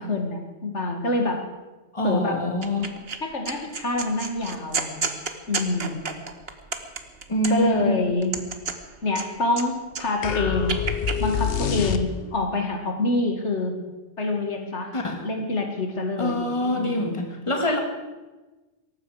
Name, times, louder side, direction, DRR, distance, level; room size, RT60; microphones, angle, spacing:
voice 1, 0.0-1.4 2.0-2.4 3.2-5.1 5.5-6.1 7.5-8.3 9.0-10.8 11.2-13.8 14.2-14.9 15.2-17.1, left 2 dB, 90° left, 3 dB, 2.4 m, -26 dB
voice 2, 1.9-3.0 7.3-8.0 14.9-15.3 16.2-17.8, left 1 dB, 25° left, 3 dB, 2.1 m, -25 dB
sound 1, 2.6-3.2 3.5-7.8 8.2-9.6 9.9-11.2, right 5 dB, 60° right, 1.5 m, -31 dB
sound 2, 10.2-12.5, left 7 dB, 60° left, 1.0 m, -26 dB
18.0 x 15.0 x 5.0 m, 1.2 s
omnidirectional pair, 1.2 m